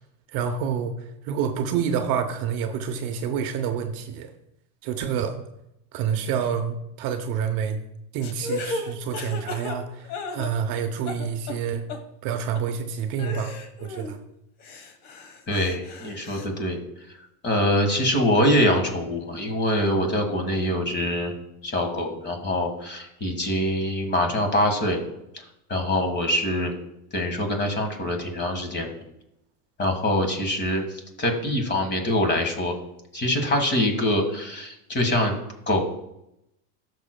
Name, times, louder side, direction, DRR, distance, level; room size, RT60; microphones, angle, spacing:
voice 1, 0.3-0.9 1.2-4.3 4.8-5.4 5.9-7.8 8.1-11.8 12.2-14.2, right 7 dB, 45° right, 6 dB, 0.8 m, -28 dB
sound 1, 8.2-10.8 11.1-11.6 11.9-12.0 12.6-12.7 13.2-14.2 14.6-16.5, left 3 dB, 50° left, 1.3 m, -35 dB
voice 2, 15.5-16.8 17.4-21.3 21.6-25.0 25.3-25.4 25.7-26.8 27.1-29.0 29.8-32.7 33.1-35.4 35.7-35.8, left 1 dB, 20° left, 4 dB, 1.6 m, -24 dB
13.0 x 6.5 x 2.2 m, 0.84 s
supercardioid pair, 125°, 48 cm